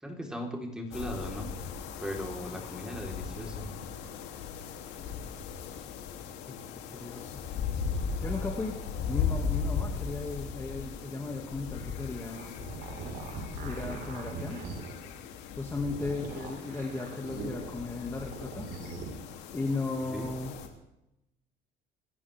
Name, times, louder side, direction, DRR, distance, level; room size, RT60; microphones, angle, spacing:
voice 1, 0.0-1.5 2.0-3.7 15.9-16.1 20.1-20.3, equal, 5° right, 1 dB, 4.3 m, -38 dB
sound 1, 0.9-20.7, left 6 dB, 75° left, 3.1 m, -37 dB
voice 2, 6.9-7.3 8.2-8.8 9.1-12.6 13.6-14.6 15.6-18.7 19.5-20.6, left 3 dB, 15° left, 1 dB, 2.3 m, -36 dB
sound 2, 12.2-15.0 15.7-17.8 18.2-19.1, right 4 dB, 65° right, 4.9 m, -41 dB
26.5 x 14.0 x 3.7 m, 0.86 s
cardioid pair, 120°, 18 cm